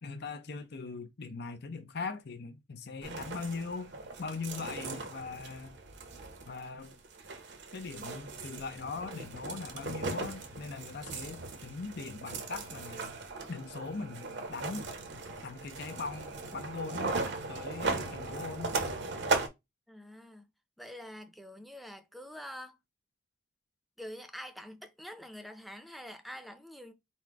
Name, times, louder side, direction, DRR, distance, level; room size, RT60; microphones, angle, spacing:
voice 1, 0.0-3.9 4.2-5.8 6.5-7.0 7.7-13.1 13.5-14.9 15.4-16.3 16.5-17.2 17.5-18.8, left 4 dB, 60° left, 0.6 m, -40 dB
sound 1, 3.0-19.5, right 3 dB, 65° right, 1.0 m, -38 dB
voice 2, 19.9-20.5 20.8-22.8 24.0-26.9, equal, ahead, 0.7 m, -46 dB
4.2 x 2.2 x 4.6 m
head